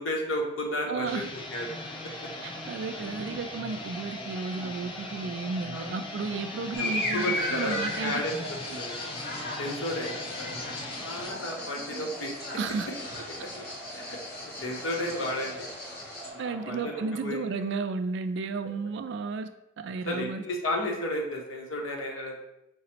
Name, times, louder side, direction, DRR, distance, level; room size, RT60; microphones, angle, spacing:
voice 1, 0.0-1.7 5.7-5.9 6.8-9.1 9.6-10.1 10.4-10.6 11.0-12.3 13.3-15.7 16.3-17.4 20.0-22.4, left 1 dB, 90° left, 0 dB, 0.8 m, -33 dB
voice 2, 0.9-1.3 2.7-8.4 12.6-12.9 16.4-19.5 19.8-20.4, right 4 dB, 60° right, 9 dB, 0.3 m, -33 dB
sound 1, 1.0-11.4, left 2 dB, 25° left, 0.3 m, -41 dB
Crowd, 1.1-17.3, right 1 dB, ahead, 0.8 m, -45 dB
sound 2, 6.7-16.3, left 2 dB, 50° left, 0.8 m, -36 dB
4.7 x 2.0 x 4.3 m, 0.88 s
head